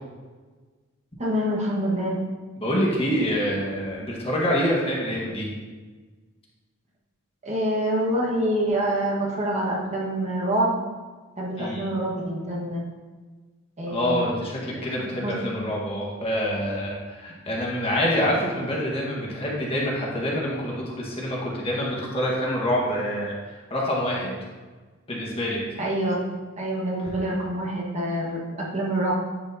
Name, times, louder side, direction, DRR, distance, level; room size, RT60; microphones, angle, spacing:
voice 1, 1.2-2.2 7.4-10.8 11.4-12.8 13.8-14.3 14.7-15.4 25.8-26.2 26.6-29.1, right 1 dB, 35° right, -4 dB, 1.4 m, -26 dB
voice 2, 2.6-5.5 11.6-11.9 13.9-24.3 25.1-25.6, equal, 30° left, -4 dB, 1.4 m, -26 dB
10.0 x 5.0 x 2.7 m, 1.4 s
head